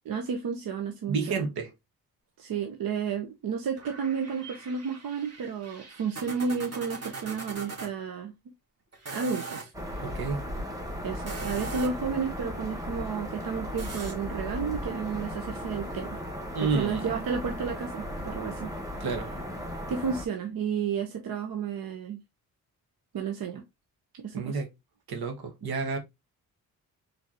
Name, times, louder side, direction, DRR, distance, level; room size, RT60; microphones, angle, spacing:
voice 1, 0.0-1.5 2.4-8.4 9.1-9.7 11.0-16.2 16.6-18.7 19.9-22.2 23.1-23.6 24.2-24.6, right 6 dB, 70° right, 0.8 m, -32 dB
voice 2, 1.1-1.7 10.0-10.4 16.5-17.1 19.0-19.3 24.3-24.7 25.1-26.0, right 4 dB, 85° right, 1.4 m, -30 dB
sound 1, 3.8-7.9 8.9-9.7 11.1-12.1 13.8-14.1, right 4 dB, 40° right, 1.9 m, -41 dB
sound 2, 9.7-20.2, equal, 10° right, 1.5 m, -36 dB
4.6 x 3.4 x 2.8 m
cardioid pair, 70°, 37 cm